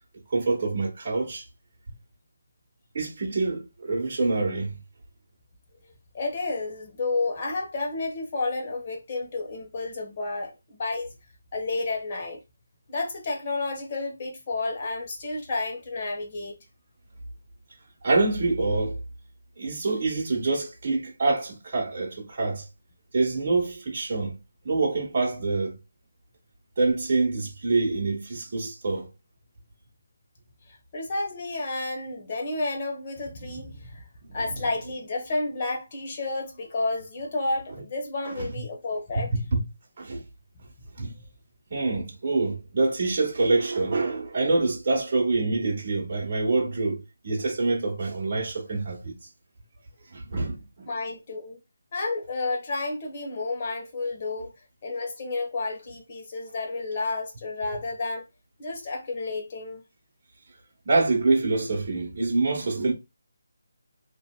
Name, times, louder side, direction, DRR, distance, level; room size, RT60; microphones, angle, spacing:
voice 1, 0.3-1.5 2.9-4.8 18.0-19.0 19.6-22.7 23.1-24.4 24.6-25.7 26.8-29.1 34.3-34.6 38.2-38.6 39.1-39.6 40.0-40.2 41.0-41.1 41.7-49.1 50.1-50.9 60.8-62.9, right 3 dB, 40° right, 1.1 m, -26 dB
voice 2, 6.1-11.1 11.5-12.4 12.9-16.6 30.9-34.1 34.3-39.3 50.9-51.6 51.9-54.5 54.8-58.2 58.6-59.8, left 3 dB, 35° left, 1.0 m, -31 dB
2.9 x 2.7 x 2.3 m
figure-of-eight pair, 160°, 0 cm